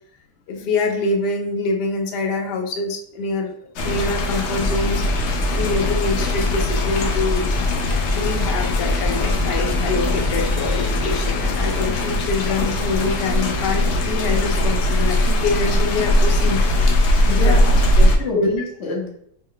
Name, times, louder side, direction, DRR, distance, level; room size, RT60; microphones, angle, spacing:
voice 1, 0.5-3.5 3.8-5.0 5.5-7.5 7.9-16.6 17.4-18.5, left 3 dB, 85° left, 3 dB, 1.3 m, -25 dB
sound 1, 3.8-18.2, left 1 dB, 70° left, 0.6 m, -20 dB
Engine, 4.6-11.9, left 2 dB, 65° right, 0.4 m, -25 dB
voice 2, 17.2-19.1, left 3 dB, 50° left, -1 dB, 1.1 m, -27 dB
4.0 x 2.2 x 3.6 m, 0.69 s
omnidirectional pair, 1.7 m